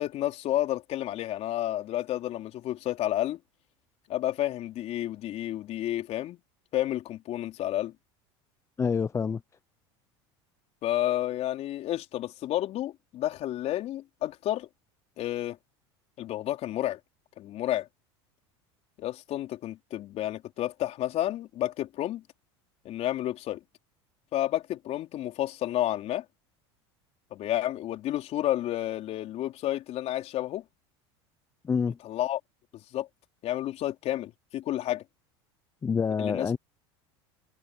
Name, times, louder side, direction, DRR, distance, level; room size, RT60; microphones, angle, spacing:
voice 1, 0.0-3.4 4.1-6.4 6.7-7.9 10.8-14.7 15.2-15.6 16.2-17.0 17.4-17.9 19.0-22.2 22.8-23.6 24.3-26.2 27.3-30.6 32.0-32.4 32.9-33.1 33.4-35.0 36.2-36.6, left 13 dB, 50° left, 3.8 m, -30 dB
voice 2, 8.8-9.4 31.6-32.0 35.8-36.6, left 6 dB, 20° left, 0.5 m, -27 dB
hypercardioid pair, 95°, 14 cm